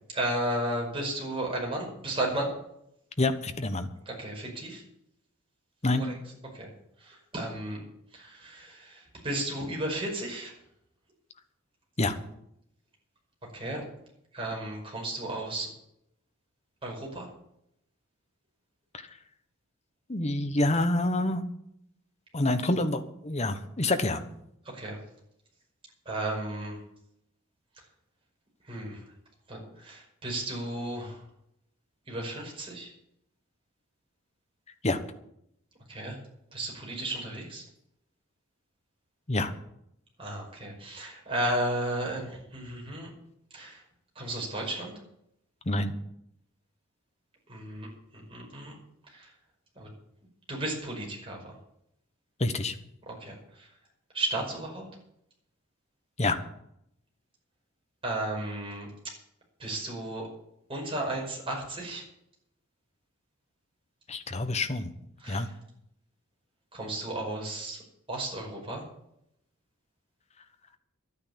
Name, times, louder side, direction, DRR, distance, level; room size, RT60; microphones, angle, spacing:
voice 1, 0.1-2.5 4.1-4.8 6.0-6.2 6.5-6.7 7.0-7.8 8.1-10.5 13.5-13.8 14.3-15.7 16.8-17.3 24.7-25.0 26.1-26.8 28.7-29.0 29.5-31.2 32.1-32.9 35.9-36.2 36.5-37.6 40.2-43.1 43.5-43.8 44.2-44.9 47.5-47.9 48.1-48.7 49.1-49.3 49.8-49.9 50.5-51.6 53.1-53.7 54.1-54.9 58.0-58.9 59.6-60.3 60.7-62.0 65.2-65.5 66.7-67.8 68.1-68.8, right 1 dB, 25° right, -1 dB, 5.3 m, -34 dB
voice 2, 3.2-3.9 5.8-6.1 12.0-12.2 18.9-19.0 20.1-21.4 22.3-24.2 34.8-35.0 39.3-39.5 45.6-45.9 52.4-52.7 56.2-56.4 64.1-64.9 65.3-65.5, left 2 dB, 30° left, 8 dB, 1.2 m, -27 dB
11.5 x 9.7 x 8.7 m, 0.77 s
head